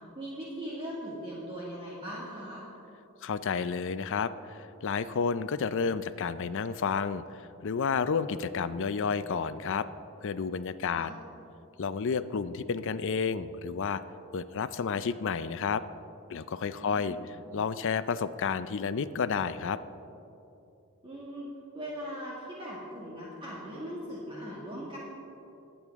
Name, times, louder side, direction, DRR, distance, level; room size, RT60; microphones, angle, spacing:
voice 1, 0.2-2.7 10.9-11.2 16.8-17.3 21.0-25.0, equal, 25° right, -7 dB, 2.0 m, -40 dB
voice 2, 3.2-9.9 10.2-11.1 11.8-14.0 14.3-15.8 16.3-19.8, left 5 dB, 60° left, 14 dB, 0.5 m, -31 dB
22.5 x 8.6 x 3.6 m, 2.8 s
head